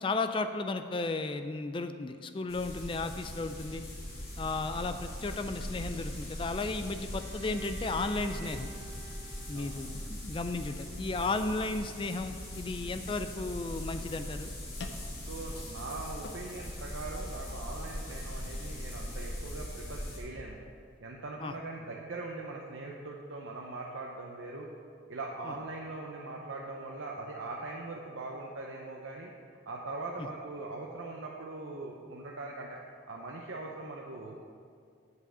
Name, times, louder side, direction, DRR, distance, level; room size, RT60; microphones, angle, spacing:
voice 1, 0.0-3.8 4.4-8.7 9.5-14.5 21.4-21.5, left 3 dB, 25° left, 8 dB, 0.3 m, -34 dB
sound 1, 2.5-20.2, left 1 dB, 50° left, 2.3 m, -40 dB
Bowed string instrument, 7.1-11.0, right 5 dB, 35° right, 1.1 m, -50 dB
sound 2, 13.0-21.0, left 3 dB, 70° left, 0.6 m, -53 dB
voice 2, 15.3-20.6 21.0-24.7 25.1-29.3 29.7-32.8 33.1-34.5, right 2 dB, 90° right, -1 dB, 0.7 m, -41 dB
8.1 x 5.0 x 6.7 m, 2.3 s
head